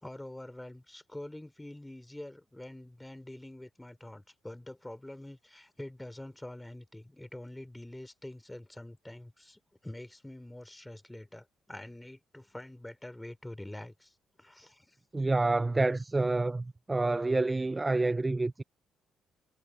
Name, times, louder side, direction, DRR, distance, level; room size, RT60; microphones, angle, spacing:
voice 1, 0.0-15.0, left 1 dB, 10° left, 3.4 m, -46 dB
voice 2, 15.1-18.6, right 2 dB, 20° right, 0.5 m, -28 dB
cardioid pair, 90°, 0 cm